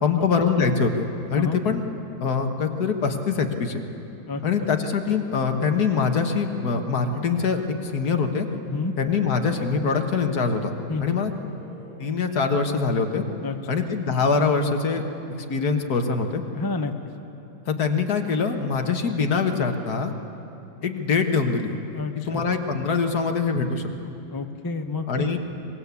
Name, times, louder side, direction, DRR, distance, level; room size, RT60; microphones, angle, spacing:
voice 1, 0.0-1.8 2.2-3.8 4.4-8.5 9.0-10.7 11.0-11.3 12.0-13.2 13.7-15.0 15.5-16.4 17.7-20.1 20.8-21.7 22.3-23.9 25.1-25.4, left 5 dB, 55° left, 5 dB, 1.9 m, -23 dB
sound 1, 8.4-13.8, equal, 35° right, 7.5 m, -48 dB
voice 2, 16.5-16.9 21.9-22.4 24.3-25.3, left 3 dB, 25° left, 6 dB, 0.5 m, -29 dB
24.0 x 21.0 x 8.4 m, 2.9 s
omnidirectional pair, 2.1 m